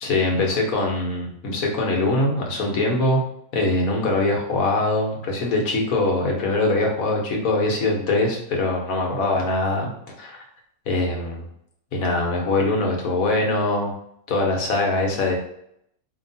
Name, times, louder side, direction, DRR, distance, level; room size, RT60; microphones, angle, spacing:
voice 1, 0.0-3.2 3.5-9.9 10.2-10.4 10.9-11.5 11.9-13.9 14.3-15.3, left 2 dB, 75° left, 0 dB, 1.4 m, -22 dB
4.5 x 2.9 x 2.7 m, 0.74 s
omnidirectional pair, 1.5 m